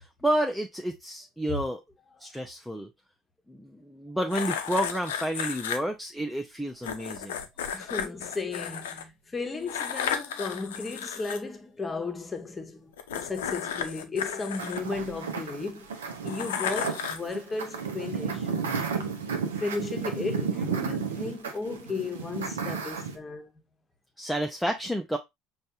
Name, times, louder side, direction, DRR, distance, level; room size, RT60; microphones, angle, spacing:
voice 1, 0.0-1.8 2.2-2.9 3.5-7.4 24.2-25.2, right 1 dB, ahead, 0.5 m, -30 dB
sound 1, 4.3-5.8 6.8-9.0 9.7-11.4 13.0-15.4 16.3-17.3, left 8 dB, 75° left, 0.5 m, -33 dB
voice 2, 7.7-15.9 16.2-18.5 19.5-23.5, left 3 dB, 20° left, 0.9 m, -35 dB
sound 2, 14.6-23.2, right 5 dB, 80° right, 0.6 m, -33 dB
5.3 x 2.4 x 2.6 m
hypercardioid pair, 65°, 0 cm